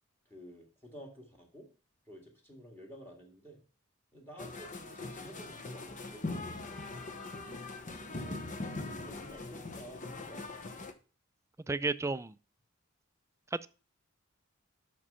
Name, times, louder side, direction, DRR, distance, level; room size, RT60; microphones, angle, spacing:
voice 1, 0.3-1.7 2.1-3.7 4.1-6.6 8.0-8.4 8.8-10.7, equal, 10° left, 1.9 m, -52 dB
sound 1, 4.4-10.9, left 2 dB, 35° left, 0.9 m, -41 dB
voice 2, 11.7-12.3 13.5-13.7, right 3 dB, 15° right, 0.3 m, -32 dB
7.7 x 6.2 x 5.5 m
head